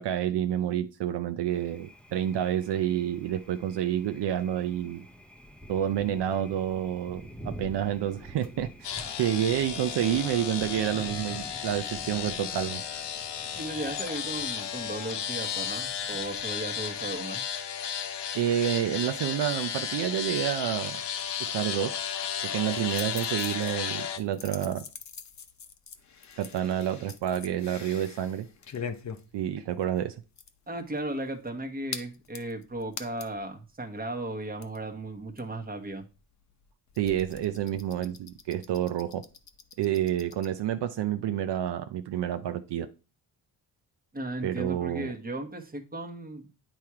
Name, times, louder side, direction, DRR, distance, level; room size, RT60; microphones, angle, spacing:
voice 1, 0.0-5.0 5.7-8.9 9.2-12.8 18.3-21.0 21.4-22.0 22.4-24.8 26.4-28.5 29.3-30.2 37.0-39.2 39.8-42.9 44.4-45.1, right 10 dB, 70° right, 0.6 m, -29 dB
Thunder, 1.5-17.2, equal, 5° left, 0.6 m, -47 dB
sound 1, 8.8-24.2, left 8 dB, 70° left, 0.9 m, -34 dB
voice 2, 13.5-17.4 30.7-36.1 44.1-46.5, right 1 dB, 20° right, 1.2 m, -36 dB
sound 2, 22.6-33.5 33.8-33.9 34.1-40.5, left 6 dB, 40° left, 0.8 m, -44 dB
8.8 x 3.0 x 4.8 m
cardioid pair, 95°, 43 cm